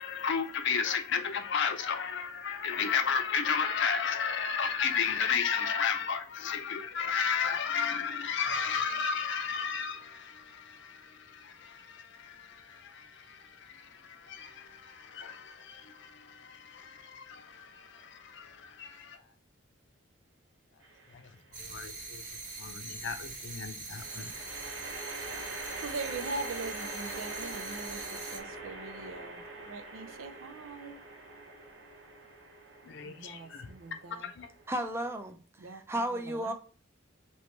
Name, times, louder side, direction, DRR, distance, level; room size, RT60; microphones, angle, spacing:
voice 1, 0.0-19.2 21.6-22.2 22.6-24.3 32.9-33.7 34.2-34.5, left 6 dB, 60° left, 0.5 m, -33 dB
sound 1, 20.8-21.4 23.9-35.3, right 2 dB, 70° right, 1.0 m, -44 dB
sound 2, 21.5-28.4, right 3 dB, 45° right, 1.0 m, -43 dB
voice 2, 25.8-31.0 33.0-34.3 35.6-36.5, right 3 dB, 85° right, 0.5 m, -42 dB
voice 3, 34.7-35.4 35.7-36.5, right 1 dB, 15° right, 0.4 m, -33 dB
3.2 x 3.0 x 4.4 m
head